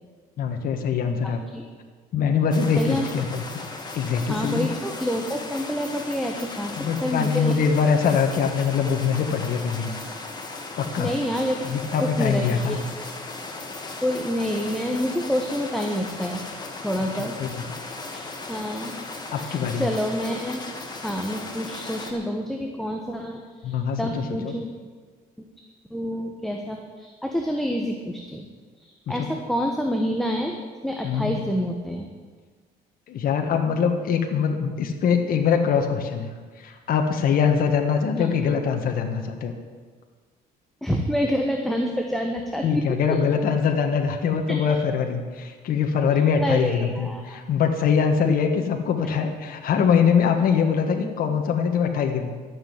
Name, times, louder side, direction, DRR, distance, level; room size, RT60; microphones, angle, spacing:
voice 1, 0.4-1.4 2.1-3.6 3.9-4.7 6.8-9.9 10.8-11.1 11.6-12.8 17.4-17.6 19.3-19.9 23.6-24.5 29.1-29.3 31.0-31.3 33.1-36.3 36.6-39.5 42.6-52.3, left 6 dB, 60° left, 4 dB, 1.5 m, -23 dB
voice 2, 1.2-1.6 2.8-3.1 4.3-7.6 11.0-11.6 12.0-12.8 14.0-16.4 16.8-17.4 18.1-18.9 19.4-20.6 21.0-24.7 25.9-28.5 28.8-30.6 30.8-32.1 38.2-38.3 40.8-43.2 44.5-44.6 46.1-47.4 48.2-48.3, equal, ahead, 2 dB, 1.3 m, -28 dB
sound 1, 2.5-22.1, left 3 dB, 25° left, 2.1 m, -37 dB
13.0 x 7.7 x 9.7 m, 1.5 s
cardioid pair, 110°, 17 cm